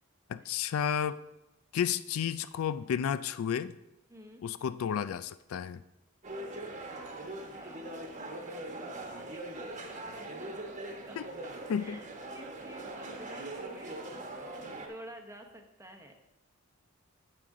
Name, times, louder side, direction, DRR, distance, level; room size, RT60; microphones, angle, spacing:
voice 1, 0.3-1.2 1.7-3.8 4.4-5.8 11.2-11.3 11.7-12.0, left 8 dB, 75° left, 15 dB, 0.3 m, -32 dB
voice 2, 4.1-4.4 7.4-11.2 11.8-14.0 14.9-16.2, right 1 dB, 15° right, 5 dB, 0.8 m, -51 dB
sound 1, 6.2-14.9, right 2 dB, 35° right, 1.1 m, -41 dB
8.8 x 7.6 x 3.7 m, 0.94 s
head